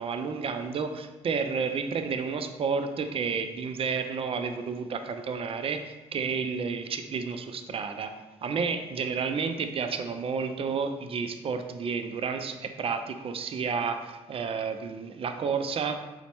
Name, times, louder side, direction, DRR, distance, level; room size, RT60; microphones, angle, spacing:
voice 1, 0.0-8.1 8.4-16.0, right 5 dB, 35° right, 8 dB, 0.3 m, -31 dB
3.9 x 2.1 x 2.9 m, 1.1 s
hypercardioid pair, 50°, 16 cm